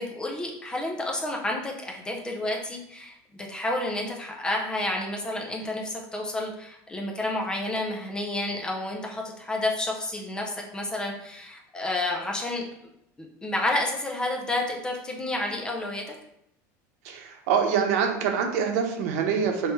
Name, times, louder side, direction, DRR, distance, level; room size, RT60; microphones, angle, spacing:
voice 1, 0.0-12.6 13.2-16.0, left 1 dB, 10° left, 0 dB, 0.4 m, -30 dB
voice 2, 17.0-19.7, right 6 dB, 85° right, 3 dB, 0.7 m, -25 dB
4.6 x 3.1 x 3.1 m, 0.77 s
cardioid pair, 180°, 8 cm